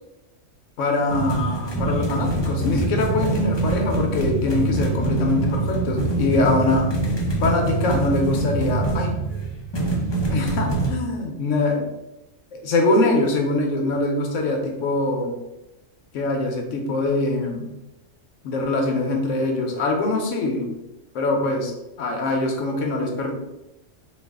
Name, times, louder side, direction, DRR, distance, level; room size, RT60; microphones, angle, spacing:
voice 1, 0.8-6.9 7.4-9.2 10.3-11.9 12.5-15.4 16.1-17.7 18.4-20.7 21.1-21.7 22.0-23.3, left 2 dB, 80° left, 2 dB, 1.1 m, -23 dB
sound 1, 1.1-10.9, right 2 dB, 40° left, 0.4 m, -24 dB
3.2 x 2.4 x 3.5 m, 0.96 s
omnidirectional pair, 1.3 m